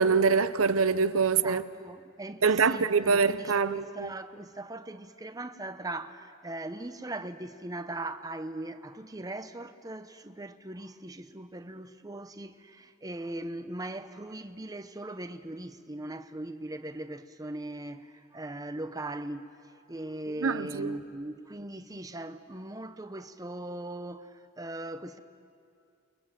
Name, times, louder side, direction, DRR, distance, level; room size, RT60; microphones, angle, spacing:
voice 1, 0.0-1.6 2.4-4.1 20.4-21.0, right 5 dB, 90° right, 0.8 m, -24 dB
voice 2, 1.4-19.5 19.9-25.2, right 1 dB, 20° right, 0.9 m, -39 dB
28.0 x 22.5 x 7.6 m
head